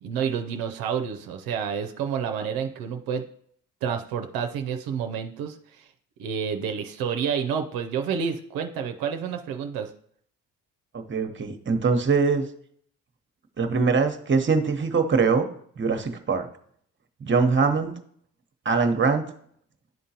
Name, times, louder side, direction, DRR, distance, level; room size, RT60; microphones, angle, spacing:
voice 1, 0.0-3.2 3.8-5.9 6.2-9.9, right 7 dB, 85° right, 6 dB, 0.5 m, -29 dB
voice 2, 10.9-12.5 13.6-15.5 15.8-16.5 17.2-17.9 18.6-19.2, right 4 dB, 35° right, 7 dB, 0.9 m, -22 dB
10.5 x 3.7 x 2.8 m, 0.63 s
supercardioid pair, 55°, 35 cm